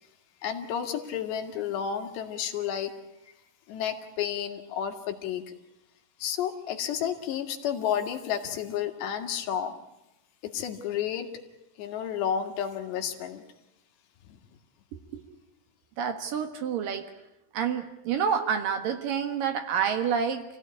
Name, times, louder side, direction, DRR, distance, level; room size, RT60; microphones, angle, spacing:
voice 1, 0.4-2.9 3.2-3.3 3.7-5.5 6.2-9.8 10.4-11.4 11.8-13.4 14.3-14.4, left 9 dB, 80° left, 5 dB, 4.1 m, -31 dB
voice 2, 16.0-17.1 17.5-20.4, right 7 dB, 60° right, 7 dB, 2.8 m, -28 dB
28.5 x 17.0 x 9.8 m, 0.92 s
omnidirectional pair, 4.9 m